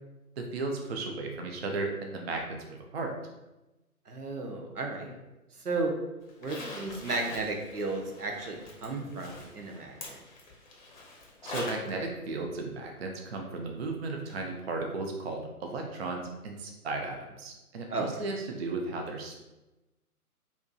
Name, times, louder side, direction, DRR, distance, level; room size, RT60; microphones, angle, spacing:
voice 1, 0.4-3.1 11.4-19.4, right 3 dB, 45° right, 2 dB, 0.5 m, -35 dB
voice 2, 4.1-5.1 5.6-5.9 6.4-10.2 17.9-18.1, right 3 dB, 85° right, 1 dB, 0.9 m, -34 dB
Zipper (clothing), 6.3-11.9 12.3-12.4 14.3-14.4 14.8-14.9, left 2 dB, 30° left, 0.6 m, -43 dB
4.4 x 2.7 x 2.3 m, 1.0 s
figure-of-eight pair, 140°, 45 cm